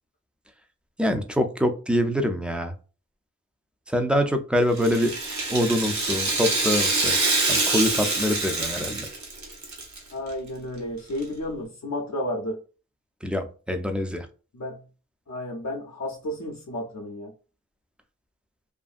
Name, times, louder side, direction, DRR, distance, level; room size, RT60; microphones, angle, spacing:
voice 1, 1.0-2.7 3.9-5.1 5.5-7.2 7.5-9.1 13.2-14.3, equal, 5° right, 0.4 m, -25 dB
Rattle (instrument), 4.7-10.0 10.3-10.4 11.2-11.3, right 3 dB, 65° right, 0.9 m, -25 dB
voice 2, 10.1-12.6 14.5-14.8 15.3-17.3, left 1 dB, 60° left, 0.6 m, -32 dB
2.6 x 2.5 x 2.4 m
wide cardioid pair, 85°, 31 cm